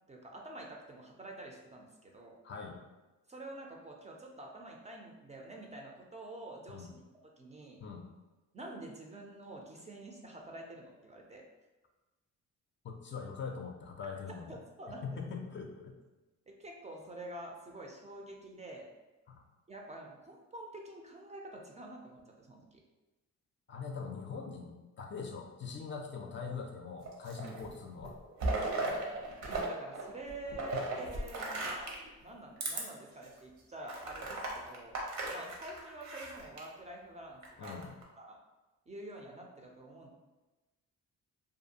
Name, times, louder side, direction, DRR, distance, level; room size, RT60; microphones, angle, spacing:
voice 1, 0.1-2.4 3.3-7.0 7.4-7.8 8.5-11.4 14.5-15.2 16.5-18.9 19.7-22.8 29.4-32.0 32.2-35.0 35.3-37.8 38.2-38.4 38.9-40.1, right 1 dB, 25° right, 0 dB, 0.4 m, -47 dB
voice 2, 2.4-2.8 6.7-6.9 7.8-8.0 12.8-14.5 15.0-16.0 19.3-19.4 23.7-28.2 30.7-30.8 37.6-37.9, left 5 dB, 40° left, 2 dB, 0.4 m, -42 dB
sound 1, 27.0-27.7 28.0-29.7 29.9-32.1 32.6-32.8 33.3-33.4 33.9-36.6 37.4-38.0, right 2 dB, 70° right, 0.7 m, -36 dB
2.5 x 2.3 x 2.7 m, 1.1 s
cardioid pair, 90°, 30 cm